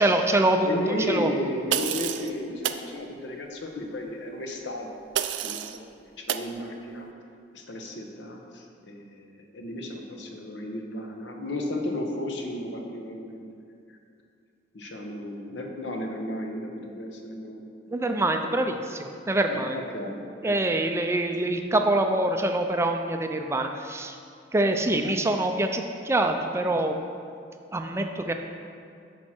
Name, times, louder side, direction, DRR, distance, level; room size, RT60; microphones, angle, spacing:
voice 1, 0.0-1.5 17.9-19.8 20.4-24.2 24.5-27.0 27.7-28.3, right 1 dB, 15° right, 5 dB, 0.4 m, -25 dB
voice 2, 0.6-4.9 5.4-7.1 7.5-13.4 13.9-14.0 14.7-17.6 19.5-20.6, left 1 dB, 70° left, 2 dB, 1.0 m, -34 dB
sound 1, 1.7-2.3 2.6-2.9 5.2-5.8 6.3-6.5, right 10 dB, 75° right, 0.4 m, -28 dB
9.1 x 6.3 x 4.4 m, 2.3 s
head